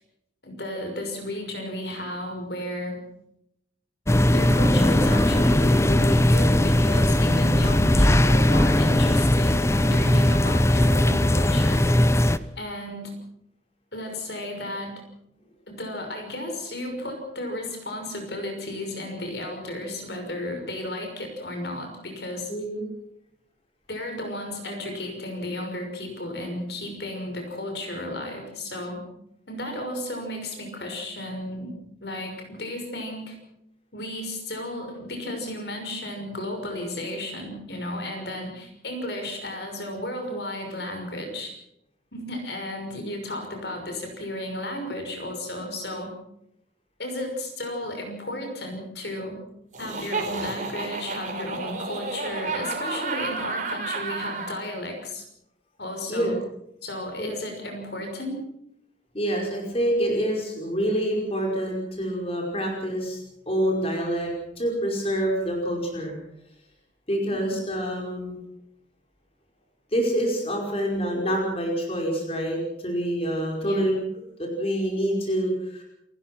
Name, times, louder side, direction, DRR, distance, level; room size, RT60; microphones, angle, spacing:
voice 1, 0.4-3.0 4.3-11.8 12.6-13.1 13.9-15.0 15.7-22.5 23.9-29.0 29.5-31.7 32.0-33.4 33.9-41.5 42.1-46.1 47.0-49.4 49.8-55.2 55.8-56.3 56.8-58.4 67.3-67.6 73.6-73.9, left 1 dB, 65° left, 4 dB, 6.0 m, -33 dB
sound 1, 4.1-12.4, left 1 dB, 15° left, 0.7 m, -19 dB
voice 2, 4.2-4.5 22.5-22.8 56.1-56.3 57.2-57.3 59.1-63.2 63.5-66.2 67.1-68.4 69.9-75.8, equal, 30° left, 0 dB, 5.3 m, -27 dB
Laughter, 49.7-54.6, right 3 dB, 45° right, 4.7 m, -31 dB
29.5 x 15.5 x 6.1 m, 0.80 s
head